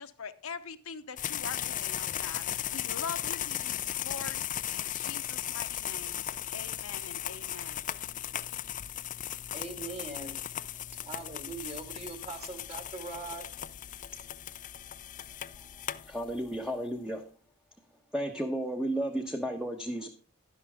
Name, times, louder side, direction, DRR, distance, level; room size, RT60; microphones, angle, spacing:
voice 1, 0.0-4.4 4.7-6.2 6.5-7.8, left 5 dB, 65° left, 1.0 m, -43 dB
sound 1, 1.2-16.6, left 11 dB, 35° left, 0.5 m, -37 dB
voice 2, 9.5-10.3 11.0-13.4, right 3 dB, 30° right, 2.2 m, -41 dB
voice 3, 16.1-17.2 18.1-20.1, right 1 dB, 5° right, 1.1 m, -33 dB
11.5 x 11.0 x 3.6 m
head